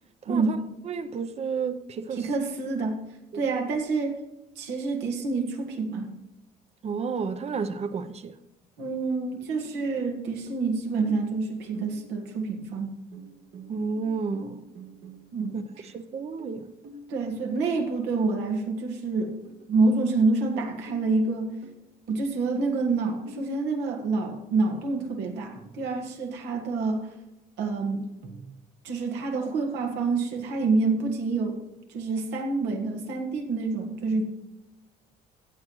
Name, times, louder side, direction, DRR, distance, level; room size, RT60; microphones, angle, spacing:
voice 1, 0.2-0.6 2.1-3.0 3.3-4.2 4.6-6.1 8.8-12.9 15.3-15.9 17.1-19.3 19.7-21.5 22.1-27.1 27.6-28.1 28.8-31.6 31.9-34.3, right 3 dB, 90° right, 1.7 m, -27 dB
voice 2, 0.8-2.3 3.3-3.4 6.8-8.3 13.7-14.6 15.5-15.6 15.9-16.7, right 5 dB, 40° right, 0.7 m, -31 dB
sound 1, 9.3-10.2 10.5-11.4 11.7-12.4 13.1-15.9 16.4-17.8 18.5-18.6 19.0-19.1 19.4-20.1 20.5-23.6 25.5-26.3 28.2-28.5, right 2 dB, 60° right, 1.2 m, -47 dB
15.0 x 7.4 x 3.1 m
cardioid pair, 110°, 17 cm